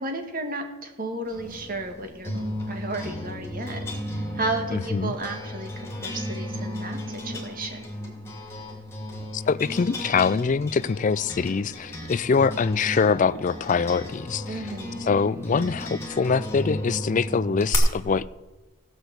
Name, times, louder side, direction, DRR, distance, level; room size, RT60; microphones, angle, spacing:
voice 1, 0.0-3.8 4.3-7.8 14.5-15.0, right 2 dB, 40° right, 4 dB, 1.7 m, -33 dB
sound 1, 1.3-17.8, left 1 dB, 10° left, 2.5 m, -35 dB
voice 2, 4.7-5.1 9.3-14.6 15.0-18.3, left 5 dB, 35° left, 18 dB, 0.3 m, -24 dB
16.0 x 6.3 x 8.0 m, 1.2 s
head